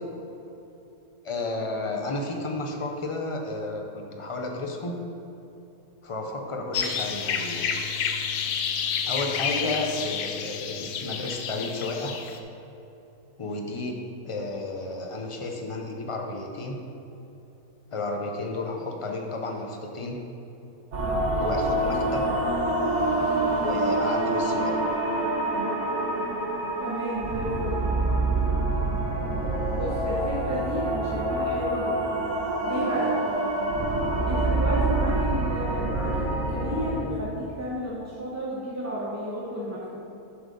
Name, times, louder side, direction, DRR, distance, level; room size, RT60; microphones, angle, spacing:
voice 1, 1.2-5.0 6.0-7.7 9.1-12.1 13.4-14.0 14.2-16.8 17.9-20.2 21.3-22.2 23.5-24.7, left 2 dB, 50° left, 2 dB, 0.4 m, -32 dB
sunrise bird calls, 6.7-12.4, left 7 dB, 75° left, 1.1 m, -30 dB
sound 1, 20.9-37.1, right 2 dB, 50° right, 1.5 m, -26 dB
voice 2, 26.8-27.7 29.7-32.2 32.7-33.1 34.2-39.8, equal, 15° right, -6 dB, 0.8 m, -32 dB
7.6 x 5.6 x 5.2 m, 2.9 s
omnidirectional pair, 1.6 m